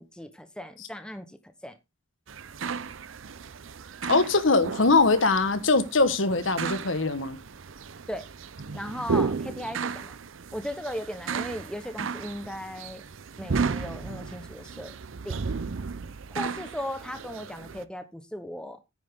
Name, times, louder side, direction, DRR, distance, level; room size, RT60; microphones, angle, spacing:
voice 1, 0.0-1.4 1.6-1.7 8.1-8.2 8.7-10.2 10.5-13.0 13.4-14.9 15.2-15.4 16.3-18.8, equal, 5° left, 1.0 m, -37 dB
sound 1, 2.3-17.8, right 5 dB, 80° right, 0.6 m, -34 dB
voice 2, 4.1-7.4, left 3 dB, 75° left, 1.3 m, -22 dB
9.7 x 8.6 x 3.7 m
head